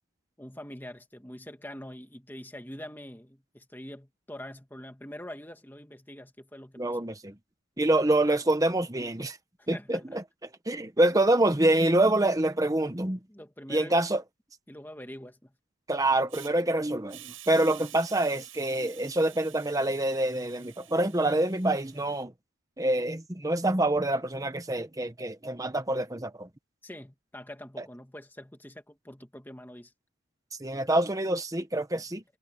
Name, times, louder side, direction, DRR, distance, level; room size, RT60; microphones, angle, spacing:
voice 1, 0.4-7.1 9.7-10.2 13.3-14.0 14.7-15.5 26.8-29.9 31.9-32.0, left 1 dB, 10° left, 2.0 m, -44 dB
voice 2, 6.8-7.3 7.8-9.4 9.7-10.2 10.7-13.2 13.7-14.2 15.9-22.3 22.8-26.5 30.6-32.2, right 1 dB, 15° right, 1.0 m, -26 dB
Hiss, 16.3-16.5 17.1-22.2, right 14 dB, 80° right, 6.0 m, -49 dB
head